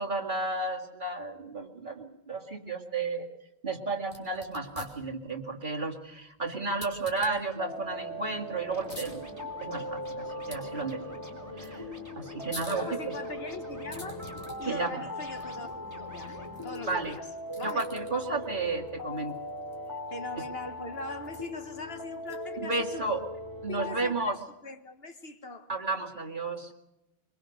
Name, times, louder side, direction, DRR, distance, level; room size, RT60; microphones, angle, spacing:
voice 1, 0.0-3.3 3.6-9.3 9.6-11.2 11.6-11.8 12.2-12.9 14.7-15.0 16.9-17.2 17.6-19.4 22.7-23.2 23.6-24.4 25.7-26.7, right 3 dB, 45° right, 2.4 m, -33 dB
sound 1, 4.0-22.7, left 1 dB, 40° left, 4.7 m, -51 dB
sound 2, 7.5-24.1, left 1 dB, 15° left, 3.4 m, -40 dB
sound 3, 8.7-17.2, right 1 dB, 15° right, 3.5 m, -48 dB
voice 2, 12.7-14.2 14.6-15.7 16.0-17.3 17.6-17.8 20.1-23.2 23.7-24.4 24.6-25.7, left 3 dB, 60° left, 1.7 m, -41 dB
23.5 x 23.0 x 6.5 m
omnidirectional pair, 1.2 m